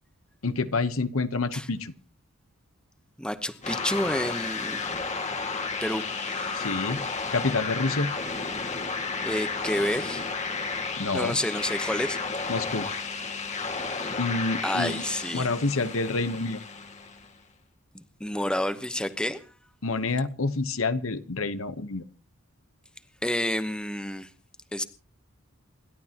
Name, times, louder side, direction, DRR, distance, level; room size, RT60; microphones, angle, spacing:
voice 1, 0.4-1.9 6.5-7.0 7.3-8.1 11.0-11.4 12.5-12.9 14.2-15.0 15.3-16.6 19.8-22.0, left 3 dB, 70° left, 12 dB, 1.0 m, -28 dB
voice 2, 3.2-4.8 5.8-6.9 9.2-10.3 11.1-12.2 14.6-15.5 18.2-19.4 23.2-24.3 24.7-24.8, left 1 dB, 5° left, 10 dB, 0.9 m, -29 dB
sound 1, 3.6-17.3, left 4 dB, 30° left, 1.9 m, -32 dB
28.0 x 12.0 x 2.9 m, 0.35 s
head